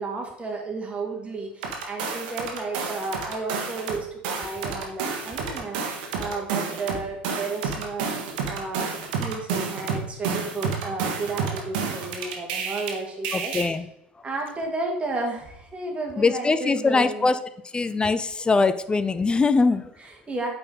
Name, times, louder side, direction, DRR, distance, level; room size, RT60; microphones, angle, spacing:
voice 1, 0.0-5.8 6.1-8.1 8.5-8.9 9.2-13.8 14.2-17.3 20.0-20.5, right 3 dB, 20° right, 2.0 m, -32 dB
sound 1, 1.6-4.0 4.2-12.9 13.2-13.6, right 5 dB, 60° right, 1.4 m, -30 dB
voice 2, 13.3-13.9 16.2-17.4 17.7-19.9, left 4 dB, 15° left, 0.5 m, -22 dB
8.7 x 4.4 x 3.9 m
figure-of-eight pair, 70°, 5 cm